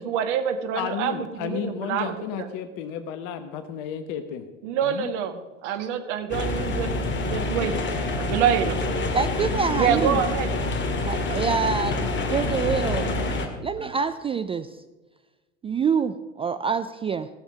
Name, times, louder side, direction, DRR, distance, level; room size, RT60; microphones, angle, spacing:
voice 1, 0.0-2.1 4.6-6.9 7.2-7.7 8.2-9.1 9.7-10.5 11.4-11.5, right 8 dB, 65° right, 9 dB, 1.4 m, -26 dB
voice 2, 0.7-4.5 4.8-5.1, left 8 dB, 55° left, 9 dB, 1.2 m, -32 dB
sound 1, 6.3-13.5, left 2 dB, 30° left, 2.0 m, -27 dB
voice 3, 9.1-10.2 11.1-13.1 13.4-14.7 15.6-17.3, right 5 dB, 15° right, 11 dB, 0.3 m, -26 dB
16.5 x 7.2 x 6.0 m, 1.2 s
hypercardioid pair, 85°, 38 cm